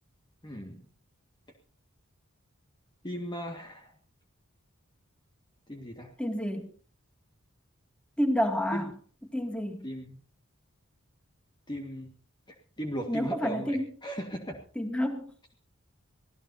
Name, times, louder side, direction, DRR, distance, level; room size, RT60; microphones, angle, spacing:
voice 1, 0.4-0.8 3.0-3.9 5.7-6.1 8.7-8.9 9.8-10.2 11.7-12.1 12.8-14.6, equal, 20° left, 3 dB, 1.9 m, -37 dB
voice 2, 6.2-6.7 8.2-8.9 9.3-9.9 13.1-13.9 14.8-15.3, equal, 5° left, 4 dB, 2.5 m, -29 dB
25.0 x 17.0 x 2.8 m, 0.40 s
head